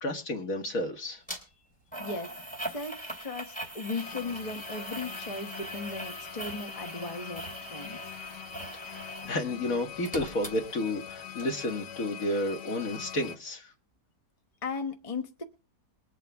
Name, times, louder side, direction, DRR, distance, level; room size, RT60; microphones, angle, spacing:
voice 1, 0.0-1.2 8.9-13.7, left 1 dB, 55° left, 2.1 m, -31 dB
sound 1, 1.3-1.4 1.9-9.4 9.7-11.1 11.4-11.5, right 1 dB, 5° left, 2.9 m, -41 dB
voice 2, 2.0-2.3 2.6-8.1 14.6-15.4, left 3 dB, 25° left, 1.0 m, -37 dB
sound 2, 4.0-13.4, left 9 dB, 85° left, 1.6 m, -44 dB
22.0 x 8.3 x 3.5 m
omnidirectional pair, 1.8 m